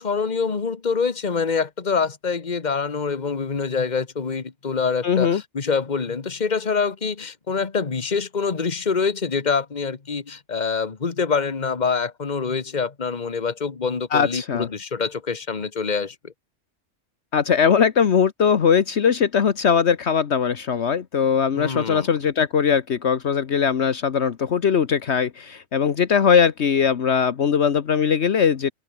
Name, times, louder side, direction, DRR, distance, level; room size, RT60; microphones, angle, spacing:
voice 1, 0.0-16.3 21.5-22.1, left 5 dB, 40° left, 1.6 m, -25 dB
voice 2, 5.0-5.4 14.1-14.7 17.3-28.7, left 7 dB, 65° left, 1.3 m, -20 dB
omnidirectional pair, 1.2 m